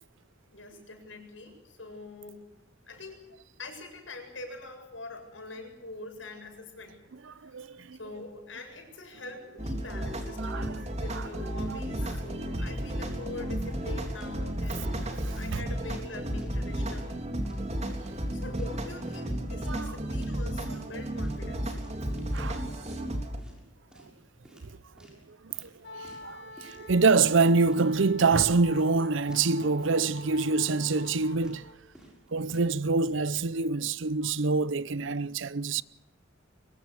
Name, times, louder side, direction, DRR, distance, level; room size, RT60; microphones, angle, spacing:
voice 1, 0.5-2.5 2.9-3.2 3.6-7.0 7.5-7.6 7.9-15.0 15.3-17.2 18.3-21.8, left 2 dB, 80° left, 7.6 m, -44 dB
voice 2, 7.3-8.0 10.4-10.8 11.1-11.8 15.1-15.6 19.7-20.0 22.3-22.6 23.1-23.2 24.6-24.8 25.3-31.7 32.3-35.8, right 4 dB, 80° right, 0.7 m, -26 dB
sound 1, 9.6-23.4, right 1 dB, 35° right, 3.5 m, -33 dB
sound 2, 13.1-13.3 13.6-13.8 14.2-14.4 14.7-15.5 15.8-16.0 16.4-17.1 17.4-17.7 18.0-19.3 19.6-19.8 20.1-20.4 20.7-20.9 21.2-22.5 22.8-23.0 23.4-23.6 23.9-24.2 24.4-25.2 25.5-25.7 26.0-26.3 26.6-26.8 27.1-27.8 28.2-28.4 28.7-29.0 29.3-29.5 29.8-30.0 30.3-30.5 30.9-31.2 31.4-31.6 31.9-32.7, right 1 dB, 5° right, 6.6 m, -54 dB
Wind instrument woodwind instrument, 25.8-31.8, left 2 dB, 60° left, 3.6 m, -45 dB
23.5 x 21.5 x 6.6 m
head